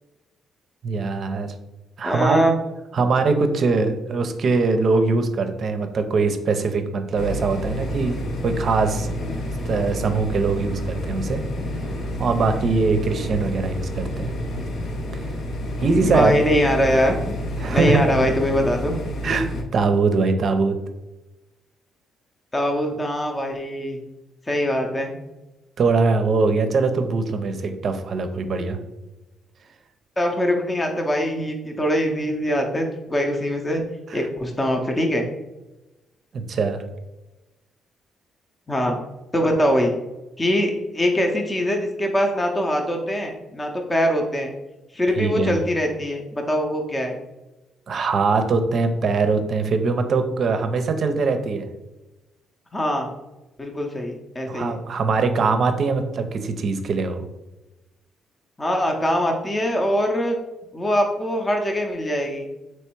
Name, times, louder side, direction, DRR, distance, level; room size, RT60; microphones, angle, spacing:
voice 1, 0.8-1.5 2.0-2.4 2.9-9.1 9.7-11.4 12.2-14.3 15.8-16.4 17.6-18.1 19.2-19.5 19.7-20.8 25.8-28.8 34.1-34.2 36.3-36.8 45.2-45.5 47.9-51.7 54.5-57.2, right 4 dB, 55° right, 7 dB, 0.5 m, -22 dB
voice 2, 2.0-2.5 16.0-17.2 17.7-18.9 22.5-24.0 24.5-25.1 30.2-33.8 34.1-35.3 38.7-39.0 39.3-39.9 40.4-44.5 44.9-47.2 52.7-53.1 53.6-54.8 58.6-60.4 60.7-62.5, equal, 20° left, 2 dB, 0.6 m, -22 dB
sound 1, 7.2-19.6, equal, 60° left, 0.6 m, -29 dB
3.3 x 3.1 x 4.5 m, 1.0 s
cardioid pair, 90°, 0 cm